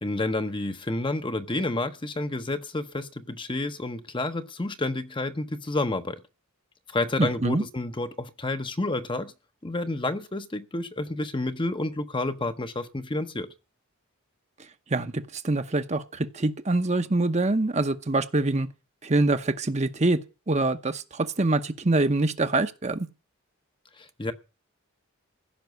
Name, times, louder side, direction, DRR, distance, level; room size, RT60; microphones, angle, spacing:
voice 1, 0.0-6.2 6.9-9.3 9.6-13.5 24.0-24.3, left 2 dB, 20° left, 0.8 m, -30 dB
voice 2, 7.2-7.6 14.9-18.7 19.0-20.2 20.5-23.1, right 2 dB, 30° right, 0.8 m, -25 dB
15.5 x 6.0 x 9.3 m
head